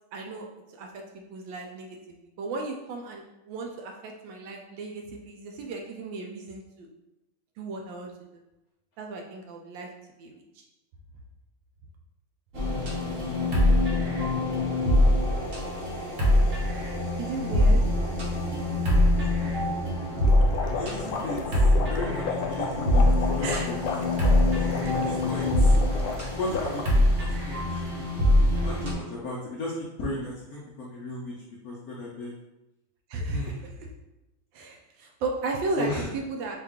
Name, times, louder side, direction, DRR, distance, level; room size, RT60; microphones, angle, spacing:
voice 1, 0.1-1.0 1.3-6.9 7.6-8.4 9.0-9.9 10.2-10.6 14.9-15.0 16.8-16.9 17.2-17.8 20.6-20.8 23.4-23.7 24.8-25.0 25.4-25.5 33.1-33.9 34.5-36.6, right 3 dB, 75° right, 2 dB, 1.2 m, -35 dB
sound 1, 12.5-28.9, left 1 dB, 50° right, 1.0 m, -24 dB
voice 2, 19.3-19.7 20.7-23.8 24.5-25.7 26.4-27.8 28.6-31.3 31.6-32.3 33.3-33.6 35.8-36.1, left 1 dB, 65° left, -6 dB, 0.9 m, -36 dB
sound 2, 20.2-26.9, left 5 dB, 85° left, 1.5 m, -33 dB
4.5 x 2.4 x 3.5 m, 0.96 s
omnidirectional pair, 2.3 m